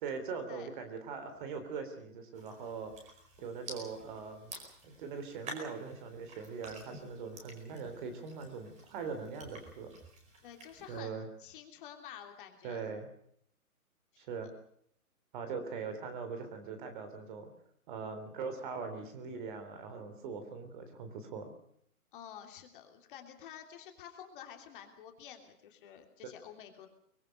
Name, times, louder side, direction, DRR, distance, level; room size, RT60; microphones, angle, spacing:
voice 1, 0.0-2.9 3.4-4.5 4.8-9.9 10.9-11.3 12.6-13.1 14.2-14.5 15.3-17.5 17.9-21.5, right 5 dB, 35° right, 8 dB, 3.5 m, -41 dB
sound 1, 2.3-11.0, right 2 dB, 15° right, 4.8 m, -51 dB
voice 2, 10.4-12.9 14.1-14.5 22.1-26.9, left 9 dB, 35° left, 4 dB, 3.0 m, -50 dB
23.5 x 20.5 x 6.6 m, 0.67 s
hypercardioid pair, 150°, 45 cm